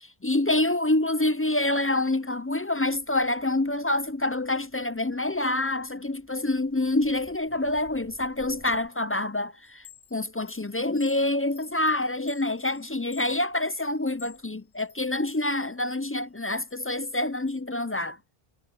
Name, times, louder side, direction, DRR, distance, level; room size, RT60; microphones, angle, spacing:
voice 1, 0.2-9.9 10.1-18.2, left 2 dB, 20° left, 0.3 m, -27 dB
sound 1, 2.9-8.9, right 1 dB, 25° right, 4.3 m, -58 dB
Chime, 9.6-15.5 15.9-17.6, left 7 dB, 80° left, 2.1 m, -53 dB
omnidirectional pair, 1.1 m